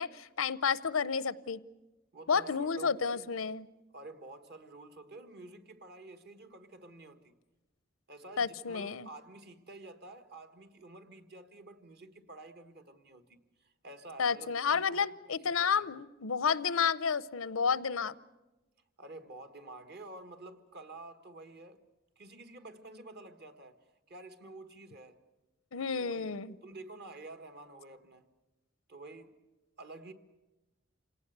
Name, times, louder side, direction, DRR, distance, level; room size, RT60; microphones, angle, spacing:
voice 1, 0.0-1.6 2.3-3.7 8.4-9.1 14.2-18.1 25.7-26.6, left 6 dB, 90° left, 0.7 m, -31 dB
voice 2, 2.1-3.3 3.9-7.3 8.1-15.9 19.0-21.8 22.2-23.8 24.1-25.2 26.0-28.2 28.9-29.4 29.8-30.1, right 2 dB, 55° right, 1.6 m, -50 dB
27.0 x 18.0 x 8.0 m
head